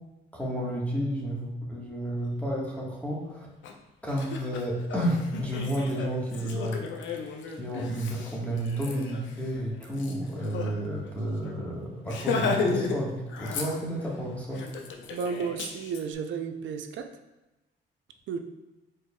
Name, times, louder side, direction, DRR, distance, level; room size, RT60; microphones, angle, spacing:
voice 1, 0.3-3.5 4.0-6.8 7.6-14.6, right 1 dB, 5° left, -4 dB, 1.4 m, -31 dB
Laughter, 3.6-3.7 4.1-10.7 11.1-11.2 11.5-11.6 12.0-13.0 13.3-14.1 14.5-16.0, left 5 dB, 70° left, 0.6 m, -34 dB
voice 2, 15.1-17.1 18.3-18.4, right 6 dB, 70° right, 6 dB, 0.5 m, -33 dB
4.6 x 4.5 x 2.3 m, 1.0 s
cardioid pair, 90°, 20 cm